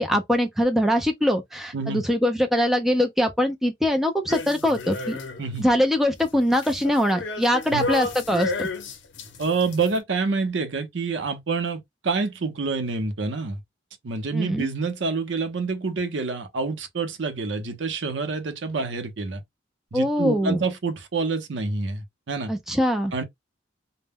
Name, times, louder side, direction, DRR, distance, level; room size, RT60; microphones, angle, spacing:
voice 1, 0.0-5.2 5.6-8.7 14.3-14.7 19.9-20.6 22.5-23.2, equal, ahead, 0.4 m, -22 dB
sound 1, 4.3-5.6 6.0-10.0, left 3 dB, 75° left, 0.6 m, -32 dB
voice 2, 9.4-13.6 14.0-19.4 19.9-22.5 23.1-23.2, right 4 dB, 75° right, 0.6 m, -27 dB
2.1 x 2.0 x 3.4 m
head